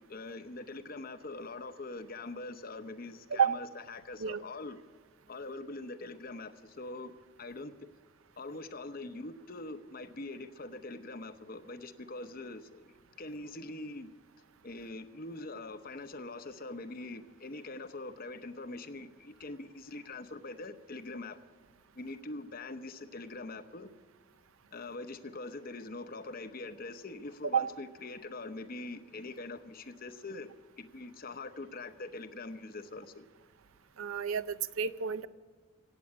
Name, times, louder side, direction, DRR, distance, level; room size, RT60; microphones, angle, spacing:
voice 1, 0.0-4.8 5.3-7.1 7.4-7.7 8.4-14.1 14.6-21.4 21.9-23.9 24.7-30.5 30.8-33.3, left 2 dB, 45° left, 10 dB, 0.8 m, -43 dB
voice 2, 34.0-35.3, right 7 dB, 80° right, 14 dB, 0.5 m, -30 dB
17.0 x 8.4 x 8.6 m, 1.4 s
head